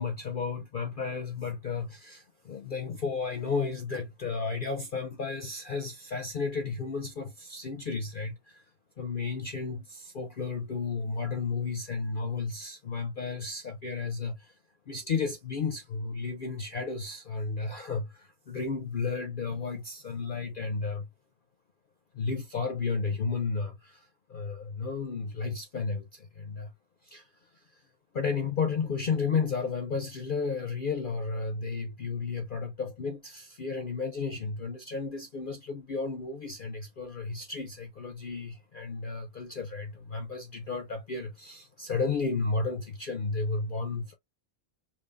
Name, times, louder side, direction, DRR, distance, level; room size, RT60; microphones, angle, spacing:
voice 1, 0.0-8.6 9.0-14.5 14.9-21.1 22.1-26.7 27.1-27.2 28.1-44.1, left 4 dB, 55° left, 0.6 m, -33 dB
4.3 x 3.0 x 2.5 m
omnidirectional pair, 1.5 m